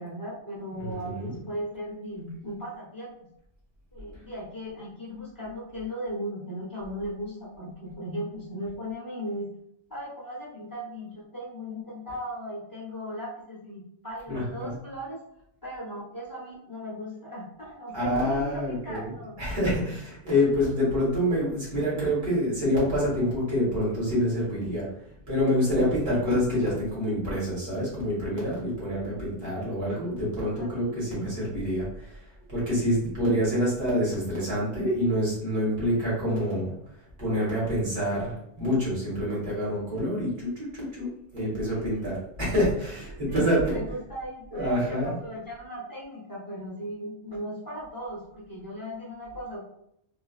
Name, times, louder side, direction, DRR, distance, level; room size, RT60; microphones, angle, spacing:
voice 1, 0.0-3.2 3.9-9.5 9.9-15.2 15.6-19.4 30.6-31.1 41.7-42.1 43.3-49.6, equal, 25° left, -6 dB, 0.6 m, -37 dB
voice 2, 0.8-1.3 14.3-14.7 17.9-24.9 25.3-32.2 32.5-36.7 37.2-43.8 44.5-45.2, equal, 85° right, -7 dB, 1.7 m, -27 dB
3.2 x 2.2 x 2.3 m, 0.73 s
omnidirectional pair, 1.1 m